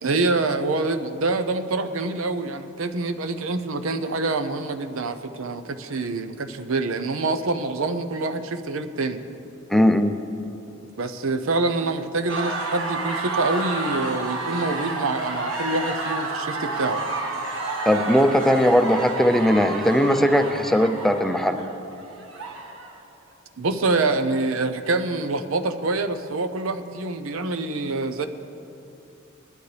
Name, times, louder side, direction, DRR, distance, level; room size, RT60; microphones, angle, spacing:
voice 1, 0.0-9.2 11.0-17.0 23.6-28.3, right 3 dB, 90° right, 8 dB, 0.8 m, -26 dB
voice 2, 9.7-10.2 17.9-21.6, equal, ahead, 7 dB, 0.5 m, -19 dB
sound 1, 12.3-23.0, right 3 dB, 70° right, 1.7 m, -30 dB
20.5 x 12.0 x 3.4 m, 2.8 s
head